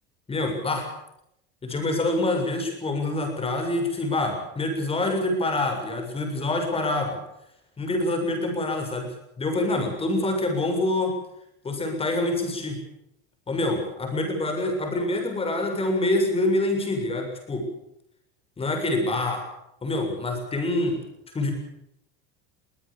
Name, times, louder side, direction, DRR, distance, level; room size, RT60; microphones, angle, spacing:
voice 1, 0.3-0.9 1.6-7.2 7.8-11.1 11.6-12.8 13.5-17.7 18.6-19.4 19.8-21.0 21.3-21.5, left 2 dB, 20° left, 4 dB, 7.1 m, -26 dB
23.0 x 18.0 x 8.8 m, 0.80 s
cardioid pair, 145°, 31 cm